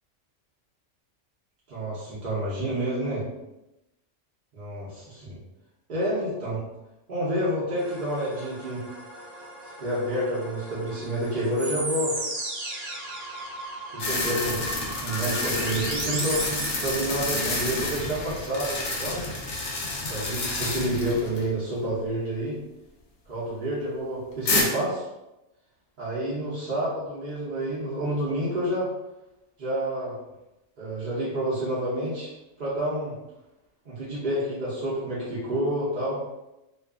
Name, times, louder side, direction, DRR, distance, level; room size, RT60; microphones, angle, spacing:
voice 1, 1.7-3.2 4.5-5.4 5.9-6.6 7.1-8.8 9.8-12.1 13.9-14.6 15.0-19.2 20.1-22.6 23.3-25.1 26.0-28.9 29.6-30.1 30.8-32.3 32.6-33.1 33.8-36.2, right 1 dB, 45° right, -9 dB, 0.7 m, -29 dB
sound 1, 7.8-16.9, right 2 dB, 75° right, 1.1 m, -36 dB
sound 2, 14.0-21.5 21.8-21.9 24.5-24.6, left 2 dB, 55° left, 0.6 m, -29 dB
2.5 x 2.3 x 2.3 m, 0.95 s
omnidirectional pair, 1.3 m